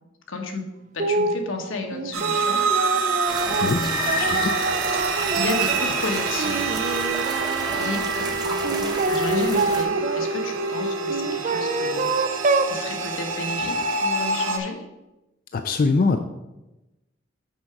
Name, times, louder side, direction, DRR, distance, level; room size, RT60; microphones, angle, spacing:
voice 1, 0.3-0.6 0.9-2.6 3.4-4.5 5.3-6.7 7.7-12.1 12.7-14.8, left 3 dB, 85° left, 3 dB, 1.2 m, -32 dB
sound 1, 1.0-1.4 1.9-6.0 6.4-7.9 8.6-10.3 11.1-12.8, right 3 dB, 40° right, 0.4 m, -26 dB
sound 2, 2.1-14.6, right 3 dB, 90° right, 0.8 m, -26 dB
sound 3, 3.3-9.8, right 2 dB, 20° right, 0.9 m, -33 dB
voice 2, 4.2-4.6 15.5-16.2, left 4 dB, 45° left, 7 dB, 0.4 m, -22 dB
6.3 x 4.8 x 5.9 m, 0.99 s
head